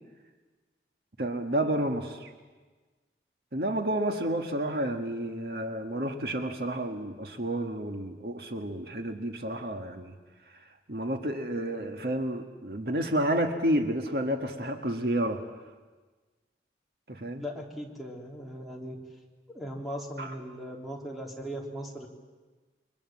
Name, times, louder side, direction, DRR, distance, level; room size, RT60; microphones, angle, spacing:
voice 1, 1.2-2.3 3.5-10.1 10.9-15.4 17.1-17.4 20.2-20.3, right 1 dB, 60° right, 4 dB, 1.7 m, -30 dB
voice 2, 17.4-19.0 19.5-22.1, equal, ahead, -1 dB, 3.2 m, -38 dB
28.5 x 23.5 x 7.4 m, 1.3 s
head